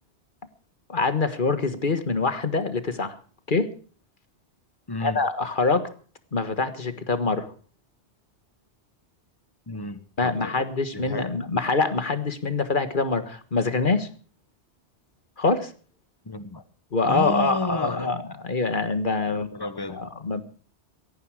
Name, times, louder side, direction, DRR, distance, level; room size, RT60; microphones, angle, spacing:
voice 1, 0.9-3.2 3.5-3.7 5.0-5.9 6.3-7.5 10.2-14.1 15.4-15.7 16.9-19.5 20.0-20.4, left 3 dB, 50° left, 1.7 m, -25 dB
voice 2, 4.9-5.2 9.7-10.7 10.9-11.4 16.2-16.6 17.0-18.1 19.3-20.0, left 2 dB, 20° left, 1.3 m, -32 dB
18.0 x 14.0 x 4.8 m
omnidirectional pair, 1.1 m